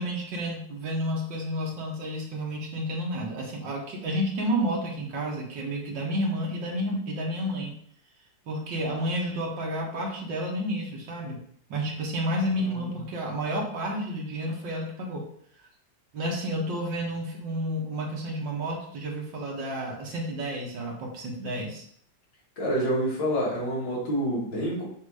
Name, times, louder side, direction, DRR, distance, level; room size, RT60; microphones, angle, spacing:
voice 1, 0.0-7.7 8.5-11.4 11.7-15.2 16.1-21.9, equal, 80° right, -1 dB, 2.1 m, -30 dB
voice 2, 22.6-24.8, equal, 80° left, -5 dB, 2.8 m, -27 dB
8.1 x 2.9 x 4.8 m, 0.64 s
omnidirectional pair, 2.0 m